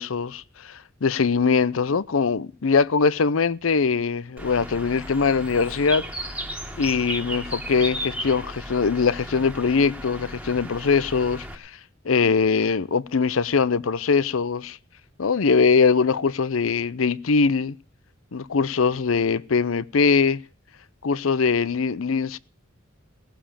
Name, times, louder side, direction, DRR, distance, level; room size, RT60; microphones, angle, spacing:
voice 1, 0.0-6.0 6.8-11.7 12.0-14.8 15.2-17.8 18.3-20.4 21.0-22.4, left 5 dB, 80° left, 0.6 m, -22 dB
Bird, 4.4-11.6, right 1 dB, 5° right, 1.8 m, -35 dB
18.5 x 7.3 x 8.8 m
head